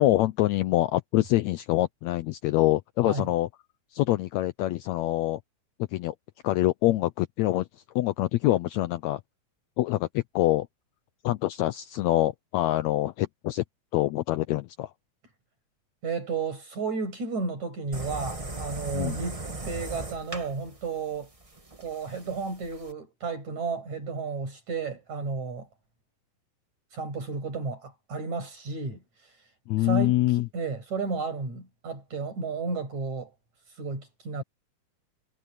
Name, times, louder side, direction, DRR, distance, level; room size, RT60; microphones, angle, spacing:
voice 1, 0.0-3.5 3.9-5.4 5.9-6.1 6.4-7.7 7.9-9.2 9.8-10.7 11.2-13.6 13.9-14.9 18.9-19.2 29.7-30.5, left 16 dB, 80° left, 1.7 m, -25 dB
voice 2, 16.0-21.3 21.8-25.7 26.9-29.0 29.8-30.2 30.5-33.3 33.8-34.4, right 4 dB, 60° right, 8.6 m, -33 dB
sound 1, 17.9-22.9, right 2 dB, 20° right, 0.8 m, -38 dB
omnidirectional pair, 3.7 m